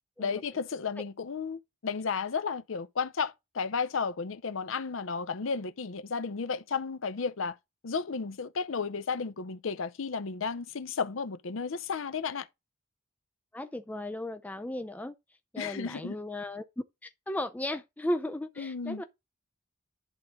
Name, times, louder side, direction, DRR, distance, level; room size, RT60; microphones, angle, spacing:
voice 1, 0.2-7.6 7.8-12.5 15.6-16.2 18.6-19.0, left 5 dB, 75° left, 0.6 m, -33 dB
voice 2, 13.5-15.1 15.5-19.0, left 1 dB, 10° left, 0.4 m, -35 dB
11.0 x 3.7 x 3.9 m
head